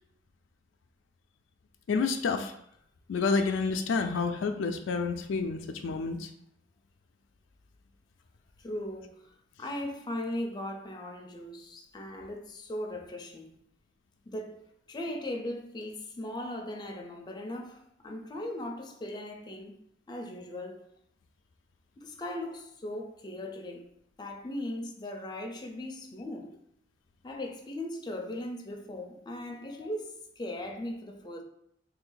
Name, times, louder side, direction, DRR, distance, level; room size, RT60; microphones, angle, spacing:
voice 1, 1.9-2.5 3.1-6.3, left 4 dB, 80° left, 0.4 m, -29 dB
voice 2, 8.6-13.6 14.3-19.8 20.1-20.9 22.0-23.8 24.2-26.6 27.2-31.4, left 1 dB, 25° left, 0.5 m, -38 dB
3.2 x 2.6 x 3.8 m
head